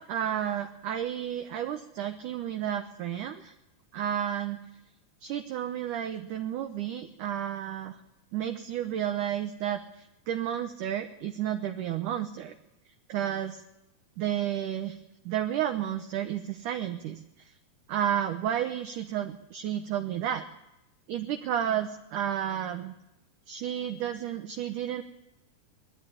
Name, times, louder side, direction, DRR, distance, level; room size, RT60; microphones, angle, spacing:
voice 1, 0.0-3.5 3.9-4.6 5.2-8.0 8.3-12.5 13.1-13.6 14.2-15.0 15.3-17.5 17.9-20.4 21.1-22.9 23.5-25.0, right 10 dB, 70° right, 6 dB, 2.0 m, -32 dB
21.0 x 13.0 x 10.0 m, 0.91 s
omnidirectional pair, 4.6 m